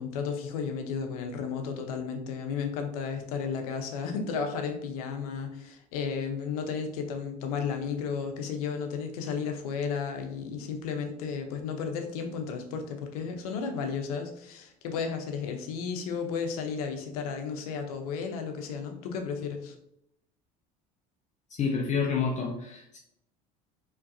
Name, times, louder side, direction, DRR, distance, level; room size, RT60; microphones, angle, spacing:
voice 1, 0.0-19.7, left 6 dB, 90° left, 5 dB, 0.8 m, -33 dB
voice 2, 21.6-23.0, left 5 dB, 40° left, 1 dB, 0.7 m, -28 dB
4.5 x 3.3 x 2.6 m, 0.76 s
supercardioid pair, 95°, 18 cm